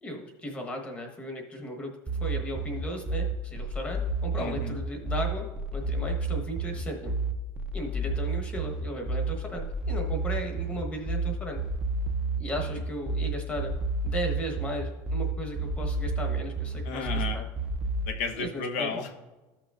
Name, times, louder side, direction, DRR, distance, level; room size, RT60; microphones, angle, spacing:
voice 1, 0.0-1.9 2.2-5.5 5.7-7.1 7.7-11.6 12.4-13.7 14.0-17.5 18.3-18.9, equal, 15° left, 2 dB, 1.2 m, -36 dB
sound 1, 2.1-18.1, right 3 dB, 10° right, 0.5 m, -30 dB
voice 2, 4.4-4.7 16.8-17.4 18.1-19.1, left 4 dB, 75° left, 5 dB, 1.1 m, -33 dB
13.5 x 5.9 x 2.5 m, 1.1 s
cardioid pair, 160°, 8 cm